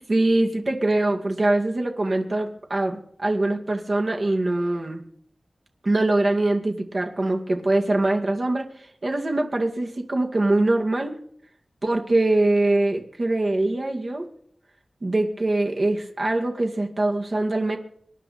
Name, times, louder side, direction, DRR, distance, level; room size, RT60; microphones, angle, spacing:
voice 1, 0.0-5.0 5.8-11.1 11.8-14.3 15.0-17.8, right 2 dB, 55° right, 1 dB, 2.2 m, -23 dB
26.5 x 11.0 x 4.3 m, 0.65 s
wide cardioid pair, 60°, 0 cm